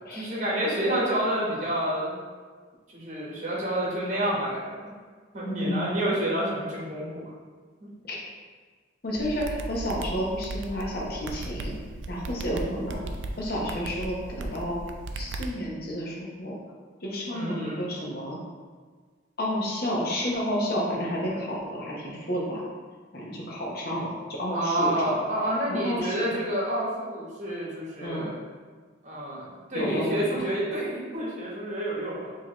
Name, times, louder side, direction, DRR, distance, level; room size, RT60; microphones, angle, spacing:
voice 1, 0.1-2.2 2.9-4.9 5.3-7.3 7.8-7.9 17.3-17.8 24.5-28.4 29.0-32.3, right 1 dB, 40° right, -5 dB, 1.1 m, -29 dB
voice 2, 5.4-5.9 8.0-8.2 9.0-11.7 12.1-13.0 13.4-14.8 15.1-16.6 17.0-18.4 19.4-22.6 23.1-25.1 25.7-26.2 28.0-28.3 29.7-30.5, equal, 50° left, -3 dB, 0.8 m, -30 dB
sound 1, 9.2-15.5, right 2 dB, 75° right, 0.4 m, -36 dB
4.7 x 2.9 x 2.9 m, 1.5 s
head